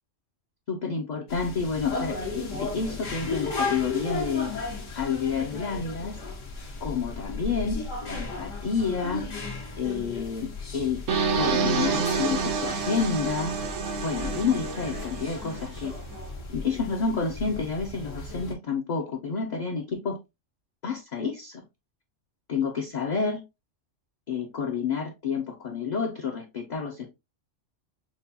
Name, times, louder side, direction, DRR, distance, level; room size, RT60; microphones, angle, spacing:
voice 1, 0.7-4.5 5.0-6.2 6.8-9.3 9.8-11.0 11.3-13.5 14.0-15.9 16.5-20.2 20.8-21.6 22.5-23.4 24.3-27.1, left 5 dB, 55° left, 0.5 m, -29 dB
sound 1, 1.3-18.5, left 3 dB, 80° left, 1.5 m, -35 dB
sound 2, 11.1-16.0, right 5 dB, 80° right, 1.0 m, -28 dB
5.8 x 2.2 x 2.6 m
omnidirectional pair, 1.3 m